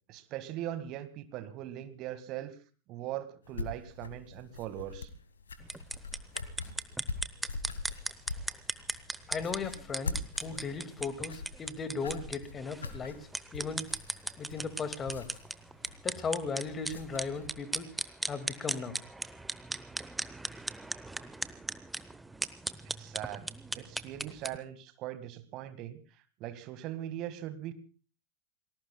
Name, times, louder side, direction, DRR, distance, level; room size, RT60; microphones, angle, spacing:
voice 1, 0.1-2.5 2.9-5.1 22.8-23.5 23.8-26.0 26.4-27.7, right 12 dB, 40° right, 12 dB, 1.8 m, -40 dB
sound 1, 3.4-17.5, left 3 dB, 70° left, 1.7 m, -43 dB
sound 2, 5.6-24.6, right 2 dB, 5° right, 0.8 m, -38 dB
voice 2, 9.3-13.9 14.4-15.3 16.0-19.0, left 4 dB, 20° left, 11 dB, 2.1 m, -37 dB
29.0 x 20.0 x 2.3 m, 0.36 s
figure-of-eight pair, 90°, 0 cm